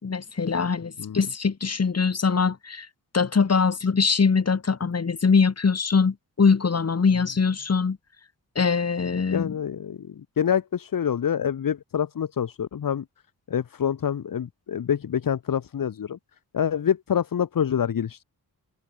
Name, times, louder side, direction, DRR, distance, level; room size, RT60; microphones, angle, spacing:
voice 1, 0.0-2.9 3.1-8.0 8.6-9.5, left 5 dB, 40° left, 2.6 m, -22 dB
voice 2, 9.3-13.0 13.5-16.2 16.5-18.2, left 8 dB, 60° left, 1.4 m, -26 dB
open air
cardioid pair, 85°, 37 cm